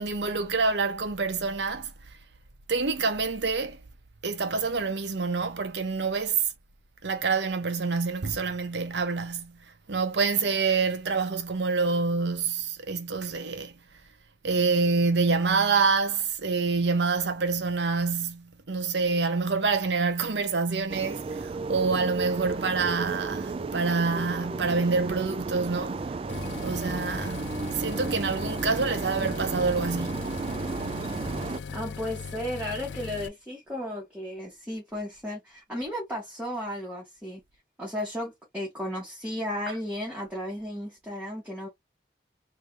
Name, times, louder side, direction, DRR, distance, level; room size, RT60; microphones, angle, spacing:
voice 1, 0.0-1.9 2.7-3.8 4.2-6.5 7.0-13.8 14.4-26.1 26.6-27.5 27.7-30.4 39.7-39.8, right 4 dB, 85° right, 0.9 m, -27 dB
sound 1, 20.9-31.6, right 3 dB, 30° right, 0.3 m, -33 dB
sound 2, 26.3-33.3, left 5 dB, 85° left, 0.4 m, -38 dB
voice 2, 31.7-37.4 37.8-41.7, left 1 dB, 10° right, 1.5 m, -34 dB
3.3 x 3.3 x 2.8 m
head